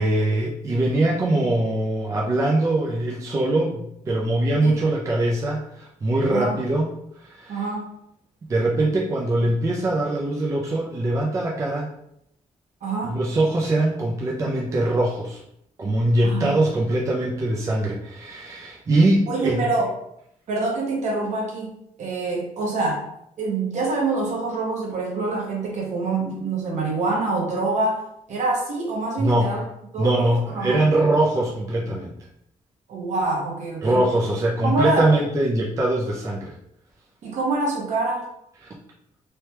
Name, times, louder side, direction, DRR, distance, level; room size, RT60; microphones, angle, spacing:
voice 1, 0.0-6.9 7.2-7.7 8.5-11.9 13.1-15.4 15.8-19.7 29.2-29.6 30.0-32.1 33.8-36.5, right 1 dB, 25° right, -3 dB, 0.3 m, -22 dB
voice 2, 7.5-7.9 12.8-13.2 16.2-16.6 19.3-19.9 20.5-23.0 23.4-28.0 28.3-29.6 29.9-30.9 32.9-34.1 34.6-35.1 37.2-38.3, right 3 dB, 60° right, -1 dB, 0.8 m, -25 dB
3.2 x 2.2 x 2.9 m, 0.76 s
wide cardioid pair, 175°, 14 cm